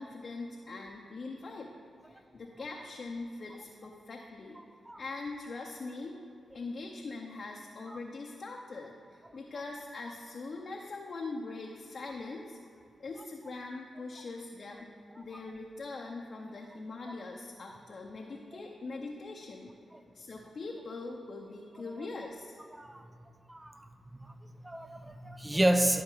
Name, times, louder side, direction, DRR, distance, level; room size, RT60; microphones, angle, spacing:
voice 1, 0.0-1.7 2.1-4.6 5.0-6.1 6.5-8.9 9.3-12.6 13.0-19.7 20.1-22.5, left 3 dB, 55° left, 0 dB, 0.8 m, -42 dB
voice 2, 22.7-23.1 23.5-23.9 24.2-26.0, right 1 dB, 15° right, 8 dB, 0.7 m, -31 dB
11.5 x 4.7 x 3.9 m, 2.5 s
supercardioid pair, 45°, 0 cm